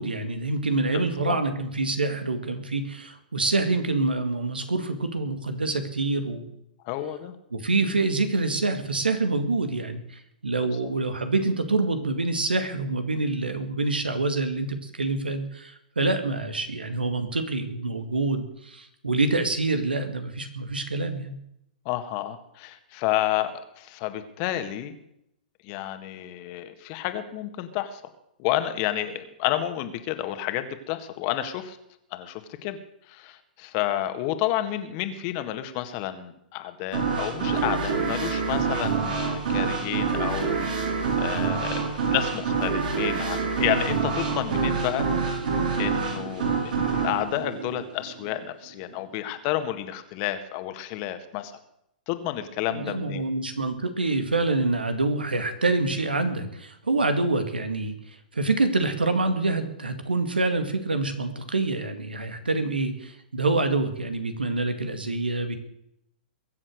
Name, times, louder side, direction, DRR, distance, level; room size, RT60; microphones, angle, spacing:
voice 1, 0.0-6.6 7.5-21.3 52.7-65.6, right 3 dB, 90° right, 8 dB, 2.1 m, -26 dB
voice 2, 0.9-1.4 6.8-7.3 21.8-25.0 25.6-28.0 28.4-31.8 32.1-32.8 33.1-40.9 41.2-45.1 45.8-51.5 52.1-53.3, left 13 dB, 40° left, 9 dB, 1.8 m, -30 dB
sound 1, 36.9-48.4, right 5 dB, 65° right, 5.2 m, -26 dB
22.5 x 7.5 x 6.5 m, 0.78 s
hypercardioid pair, 115°, 5 cm